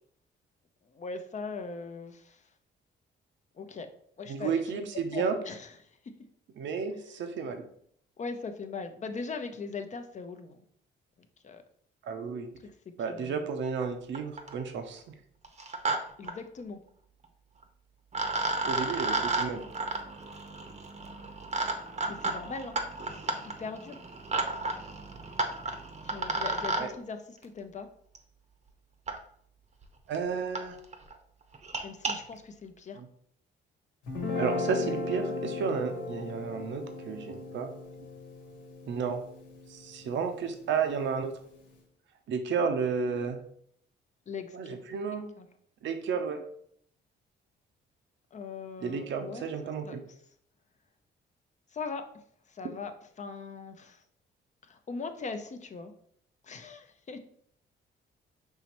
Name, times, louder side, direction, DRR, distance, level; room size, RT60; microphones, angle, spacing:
voice 1, 0.9-2.4 3.5-3.9 4.2-5.7 8.2-10.6 11.4-11.6 12.6-12.7 13.1-13.5 16.2-16.8 22.0-22.8 23.4-24.0 26.0-27.9 31.8-33.0 44.3-44.8 45.4-45.5 48.3-49.5 49.8-50.0 51.7-52.1 52.5-54.0 54.6-55.9 56.4-57.2, left 4 dB, 35° left, 8 dB, 0.6 m, -40 dB
voice 2, 4.3-5.3 6.6-7.6 12.0-12.5 13.0-15.1 18.6-19.6 26.8-26.9 30.1-30.8 33.0-33.1 34.4-37.7 38.9-39.2 39.7-41.3 42.3-43.4 44.5-45.2 45.8-46.4 48.8-50.0, right 5 dB, 70° right, 6 dB, 0.7 m, -32 dB
sound 1, 13.8-13.9 14.2-14.6 15.4-16.0 16.2-16.3 17.6-17.7 18.1-26.8 28.2-28.3 29.1-29.2 29.8-29.9 30.1-30.2 30.6-30.7 30.9-31.1 31.5-32.1, right 3 dB, 35° right, 0.8 m, -32 dB
Guitar, 34.1-40.4, left 3 dB, 80° left, 1.2 m, -36 dB
5.5 x 3.0 x 3.0 m, 0.65 s
cardioid pair, 90°, 20 cm